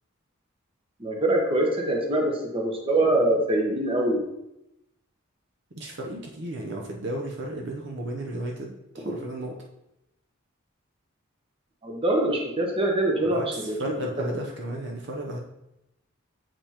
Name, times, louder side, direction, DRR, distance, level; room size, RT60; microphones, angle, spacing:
voice 1, 1.0-4.2 9.0-9.1 11.8-13.8, right 1 dB, 25° right, 0 dB, 0.9 m, -24 dB
voice 2, 5.7-9.5 13.2-15.4, right 1 dB, 55° right, 0 dB, 0.7 m, -34 dB
7.0 x 5.1 x 2.9 m, 0.88 s
head